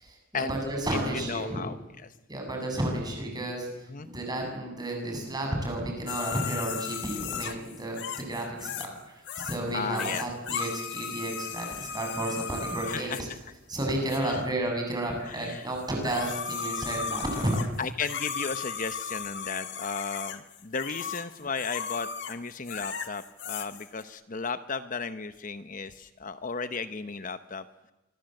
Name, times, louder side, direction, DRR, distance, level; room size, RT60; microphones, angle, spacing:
voice 1, 0.3-1.6 2.3-3.7 4.0-13.3 13.7-17.7, right 1 dB, 20° right, 2 dB, 7.3 m, -32 dB
voice 2, 1.1-1.8 2.0-2.1 3.9-4.1 9.7-10.3 12.9-13.2 14.2-14.4 15.2-15.7 17.8-27.6, left 5 dB, 40° left, 11 dB, 0.9 m, -35 dB
sound 1, 6.1-9.0 9.3-9.6 9.9-13.2 14.1-14.2 15.8-24.0, left 7 dB, 60° left, 1.9 m, -36 dB
26.0 x 22.5 x 7.8 m, 0.98 s
head